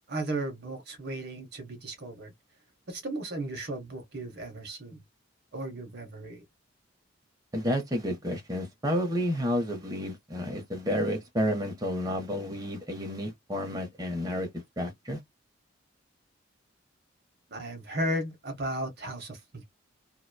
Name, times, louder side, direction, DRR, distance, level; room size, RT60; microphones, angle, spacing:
voice 1, 0.1-2.3 2.9-5.0 5.5-6.4 17.5-19.6, right 1 dB, 50° right, 0.8 m, -35 dB
voice 2, 7.5-14.5 14.8-15.2, equal, 15° right, 0.7 m, -30 dB
2.9 x 2.1 x 2.2 m
head